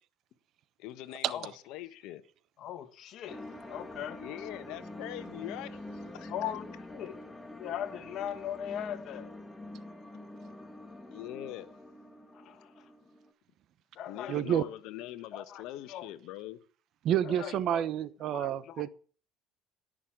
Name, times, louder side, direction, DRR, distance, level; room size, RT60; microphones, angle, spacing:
voice 1, 0.8-2.2 4.2-6.3 11.1-11.7 14.1-16.6, left 14 dB, 75° left, 1.2 m, -43 dB
voice 2, 2.6-4.2 6.3-7.2 7.5-9.3 12.3-12.9 13.9-14.7 15.3-16.1 17.2-17.8 18.3-18.9, left 10 dB, 55° left, 1.7 m, -40 dB
sound 1, 3.3-13.3, left 1 dB, 10° left, 1.7 m, -46 dB
voice 3, 14.3-14.6 17.0-18.9, right 10 dB, 55° right, 1.0 m, -29 dB
18.0 x 6.4 x 7.6 m
supercardioid pair, 110°, 0 cm